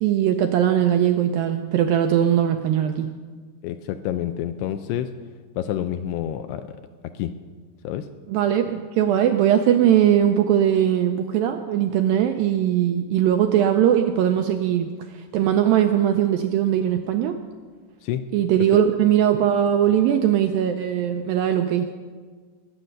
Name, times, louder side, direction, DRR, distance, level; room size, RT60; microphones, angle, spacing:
voice 1, 0.0-3.1 8.3-17.4 18.3-21.9, right 10 dB, 90° right, 7 dB, 2.0 m, -20 dB
voice 2, 3.6-5.1 5.6-6.8 7.0-7.4 7.8-8.1 18.0-18.2, left 11 dB, 85° left, 8 dB, 2.6 m, -28 dB
20.0 x 7.8 x 6.5 m, 1.5 s
omnidirectional pair, 4.7 m